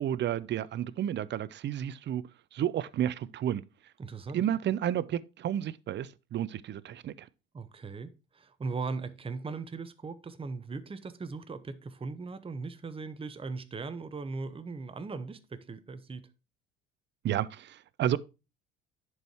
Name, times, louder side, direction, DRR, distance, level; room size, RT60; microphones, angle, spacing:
voice 1, 0.0-3.6 4.3-7.3 17.2-18.2, right 11 dB, 35° right, 0.6 m, -31 dB
voice 2, 4.0-4.4 7.5-16.3, right 4 dB, 20° right, 0.9 m, -39 dB
10.5 x 4.8 x 4.4 m
hypercardioid pair, 60°, 30 cm